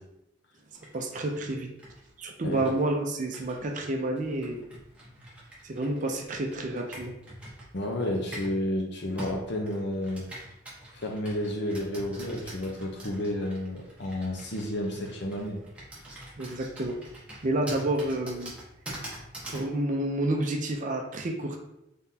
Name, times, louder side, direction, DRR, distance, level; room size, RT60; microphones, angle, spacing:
Computer keyboard, 0.7-8.6 9.2-19.7, right 1 dB, 5° right, 0.9 m, -45 dB
voice 1, 0.9-1.7 2.2-4.7 5.6-7.1 16.4-17.0 17.4-18.5 19.5-21.6, right 1 dB, 40° right, 3 dB, 0.5 m, -29 dB
voice 2, 7.7-10.2 10.9-15.6, left 1 dB, 60° left, 1 dB, 0.7 m, -31 dB
3.8 x 3.4 x 2.8 m, 0.85 s
head